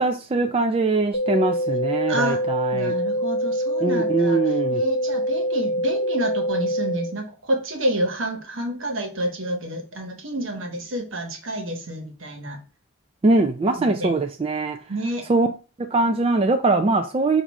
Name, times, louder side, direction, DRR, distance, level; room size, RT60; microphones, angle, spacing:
voice 1, 0.0-2.9 3.8-4.8 13.2-14.8 15.3-15.5 15.9-17.4, right 3 dB, 30° right, 0.3 m, -22 dB
sound 1, 1.1-7.1, equal, 70° left, 0.8 m, -25 dB
voice 2, 2.1-2.4 2.7-12.6 13.8-14.1 14.9-15.3, right 1 dB, 80° right, 1.2 m, -29 dB
4.8 x 2.6 x 4.0 m
head